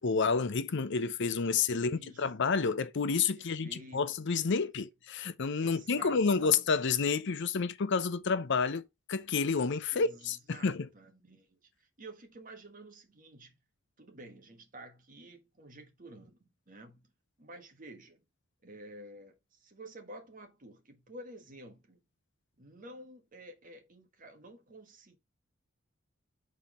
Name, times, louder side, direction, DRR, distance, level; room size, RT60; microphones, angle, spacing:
voice 1, 0.0-10.9, left 5 dB, 60° left, 0.6 m, -30 dB
voice 2, 1.5-2.3 3.3-4.1 5.6-6.7 9.9-13.5 14.0-17.1 17.4-18.2 18.6-22.0 22.6-25.2, right 1 dB, 40° right, 1.5 m, -51 dB
5.5 x 4.3 x 5.1 m
head